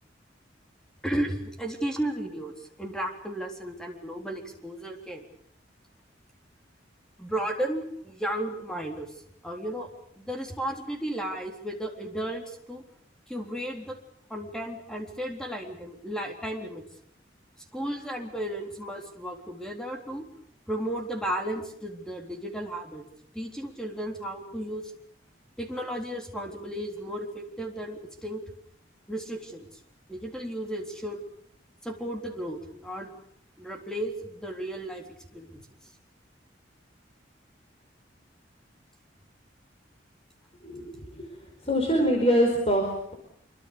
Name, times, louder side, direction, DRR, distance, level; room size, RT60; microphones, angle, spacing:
voice 1, 1.0-2.5 2.8-5.3 7.2-9.1 9.4-9.9 10.2-12.8 13.3-14.0 14.3-16.8 17.7-20.3 20.7-23.0 23.3-24.9 25.6-28.4 29.1-29.7 30.1-31.2 31.8-33.1 33.6-35.0 35.3-35.6, right 1 dB, 5° left, 3 dB, 3.8 m, -34 dB
voice 2, 40.6-41.3 41.6-42.9, equal, 35° left, 2 dB, 4.7 m, -24 dB
26.0 x 24.0 x 7.0 m, 0.68 s
head